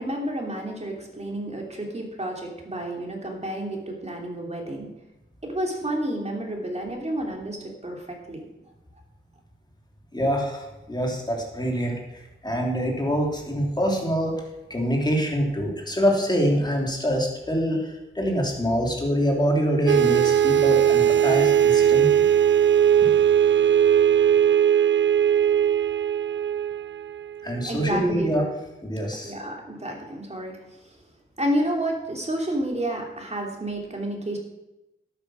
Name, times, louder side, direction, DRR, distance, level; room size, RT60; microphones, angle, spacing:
voice 1, 0.0-4.9 5.4-8.4 27.7-28.3 29.2-31.0 31.4-34.4, right 1 dB, 30° right, 1 dB, 2.9 m, -30 dB
voice 2, 10.1-14.4 14.7-22.3 23.0-23.2 27.4-28.5 28.8-29.3, equal, 20° left, 0 dB, 3.0 m, -25 dB
sound 1, 19.9-27.6, right 9 dB, 60° right, 0.4 m, -19 dB
11.5 x 9.0 x 6.2 m, 0.97 s
wide cardioid pair, 90°, 21 cm